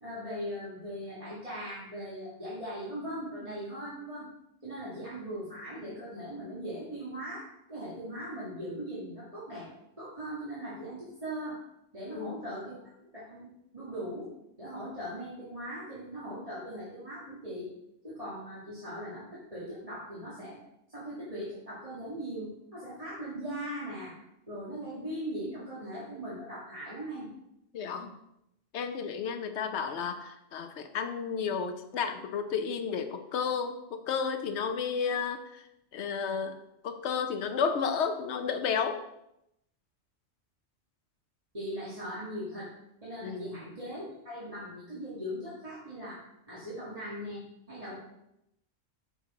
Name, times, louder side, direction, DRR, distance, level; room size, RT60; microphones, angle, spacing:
voice 1, 0.0-4.3 4.6-9.7 10.0-11.6 11.9-14.3 14.6-17.7 18.0-20.6 20.9-24.1 24.5-27.3 41.5-42.7 43.0-46.2 46.5-47.4 47.7-48.0, equal, 30° right, -9 dB, 1.9 m, -39 dB
voice 2, 27.7-28.1 28.7-35.6 35.9-36.6 36.8-39.0 43.2-43.5, left 6 dB, 75° left, 8 dB, 1.0 m, -32 dB
6.9 x 6.6 x 3.7 m, 0.83 s
omnidirectional pair, 1.2 m